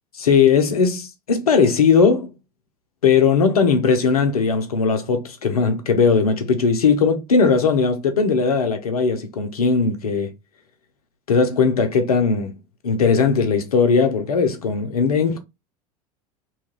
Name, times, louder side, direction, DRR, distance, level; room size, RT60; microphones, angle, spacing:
voice 1, 0.1-2.3 3.0-10.3 11.3-12.5 12.8-15.4, left 5 dB, 80° left, 0.7 m, -18 dB
2.9 x 2.4 x 2.9 m
hypercardioid pair, 80°, 19 cm